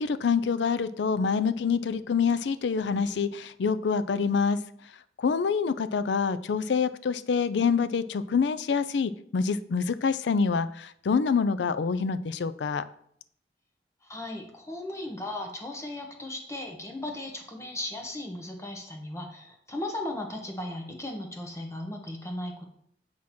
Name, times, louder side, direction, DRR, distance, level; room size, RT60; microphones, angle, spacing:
voice 1, 0.0-4.6 5.2-12.8, left 5 dB, 75° left, 13 dB, 0.4 m, -26 dB
voice 2, 14.0-22.7, left 1 dB, 15° left, 2 dB, 1.0 m, -36 dB
8.4 x 2.9 x 6.0 m, 0.67 s
head